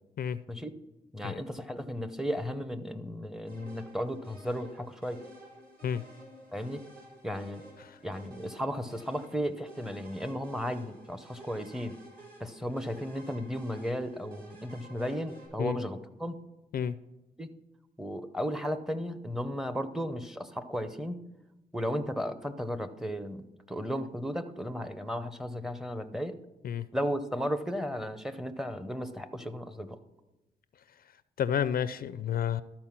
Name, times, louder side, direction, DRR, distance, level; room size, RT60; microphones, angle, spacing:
voice 1, 1.1-5.2 6.5-6.8 7.2-7.7 8.0-12.0 12.4-16.4 17.4-17.5 18.0-21.2 21.7-26.4 26.9-30.0, equal, ahead, 10 dB, 0.7 m, -35 dB
sound 1, 3.5-15.5, right 1 dB, 60° right, 3.9 m, -53 dB
voice 2, 31.4-32.6, left 8 dB, 60° left, 15 dB, 0.4 m, -30 dB
13.0 x 4.4 x 5.8 m, 1.0 s
cardioid pair, 90°, 17 cm